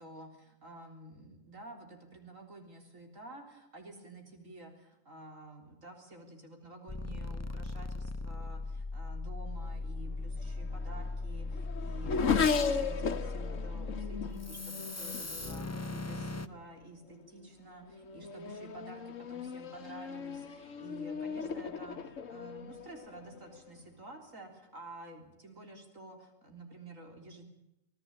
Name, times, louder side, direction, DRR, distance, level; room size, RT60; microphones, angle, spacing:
voice 1, 0.0-27.4, right 2 dB, 85° right, 3 dB, 4.1 m, -50 dB
sound 1, 6.9-16.5, left 2 dB, 15° left, 0.7 m, -38 dB
Race car auto racing / Accelerating revving vroom, 10.4-16.3 17.1-17.5 17.9-23.8, left 5 dB, 80° left, 1.6 m, -36 dB
26.5 x 17.5 x 8.8 m, 0.88 s
omnidirectional pair, 1.3 m